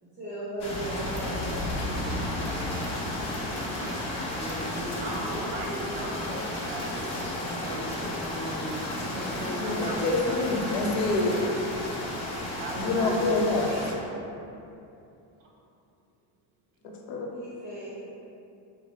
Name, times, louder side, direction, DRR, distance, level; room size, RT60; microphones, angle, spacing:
voice 1, 0.0-2.1 17.3-18.0, right 1 dB, 15° right, -9 dB, 0.8 m, -37 dB
sound 1, 0.6-13.9, left 1 dB, 35° left, 0.8 m, -33 dB
voice 2, 4.0-7.0 7.4-7.9 8.2-10.4 11.7-12.1 12.5-13.4 13.6-13.8, right 1 dB, 50° right, -1 dB, 0.8 m, -37 dB
voice 3, 9.6-11.6 12.7-13.8 17.1-17.3, left 2 dB, 80° left, 0 dB, 0.8 m, -26 dB
4.9 x 2.2 x 4.2 m, 2.7 s
cardioid pair, 130°, 45 cm